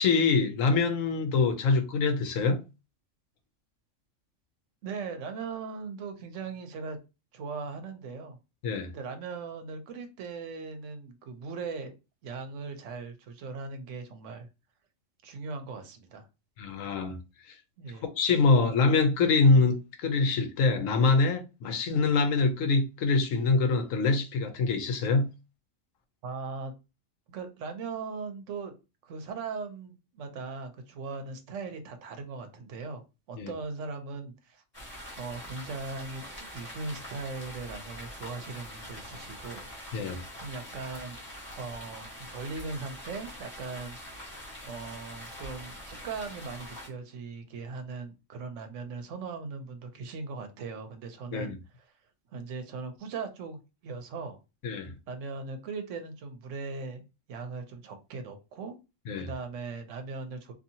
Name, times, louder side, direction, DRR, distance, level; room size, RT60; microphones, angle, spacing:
voice 1, 0.0-2.6 8.6-8.9 16.6-17.2 17.5-17.6 18.2-25.3 33.4-33.5 39.9-40.2 51.3-51.5 54.6-54.9 59.1-59.3, left 4 dB, 85° left, 1.0 m, -24 dB
voice 2, 4.8-7.0 7.3-8.4 8.8-11.9 12.2-14.5 15.2-16.3 17.8-18.1 26.2-26.7 27.3-28.7 29.0-34.6 35.2-39.6 40.4-41.2 41.5-44.0 44.6-51.5 52.3-54.4 55.1-57.0 57.3-58.8 59.2-60.5, right 4 dB, 75° right, 1.0 m, -39 dB
sound 1, 34.7-46.9, equal, 20° left, 1.4 m, -44 dB
2.7 x 2.7 x 2.7 m
omnidirectional pair, 1.3 m